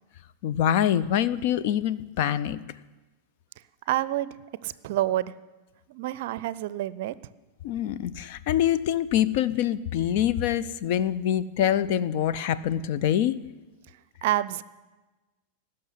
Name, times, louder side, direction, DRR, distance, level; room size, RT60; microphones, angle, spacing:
voice 1, 0.4-2.6 7.6-13.4, left 10 dB, 50° left, 16 dB, 0.6 m, -25 dB
voice 2, 3.9-4.3 4.6-5.3 5.9-7.1 14.2-14.6, right 14 dB, 50° right, 18 dB, 0.5 m, -28 dB
18.0 x 6.6 x 9.6 m, 1.2 s
figure-of-eight pair, 90°, 0 cm